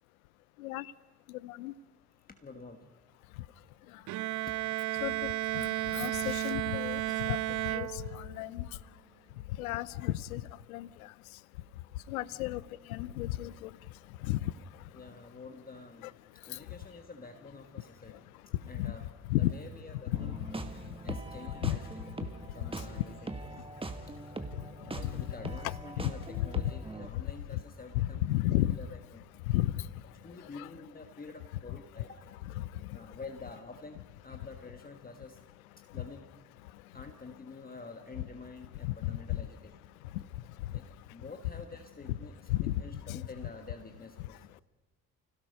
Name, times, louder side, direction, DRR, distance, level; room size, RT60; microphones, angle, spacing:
voice 1, 1.4-1.7 5.0-7.0 7.3-7.4 7.6-8.7 9.6-10.4 10.7-10.9 12.1-12.6 12.9-13.7 14.2-14.5 18.7-18.9 19.3-19.5 20.1-20.4 21.6-21.8 25.0-25.3 26.0-26.1 27.5-27.6 28.0-28.8 29.5-29.8 30.6-30.7 32.6-33.0 39.0-39.2 42.5-42.7 43.1-43.2, left 15 dB, 75° left, 21 dB, 0.7 m, -33 dB
voice 2, 2.4-2.9 4.3-4.4 12.3-12.4 14.9-16.1 16.4-20.4 21.0-23.6 24.8-29.2 30.2-32.2 32.9-34.0 34.2-35.4 35.9-36.3 36.9-39.7 40.7-40.8 41.1-44.4, left 3 dB, 20° left, 5 dB, 1.5 m, -48 dB
Bowed string instrument, 4.1-8.5, right 16 dB, 45° right, 0.6 m, -33 dB
sound 1, 20.1-27.1, right 2 dB, 10° right, 1.6 m, -42 dB
29.5 x 17.0 x 5.4 m, 1.2 s
figure-of-eight pair, 50°, 44 cm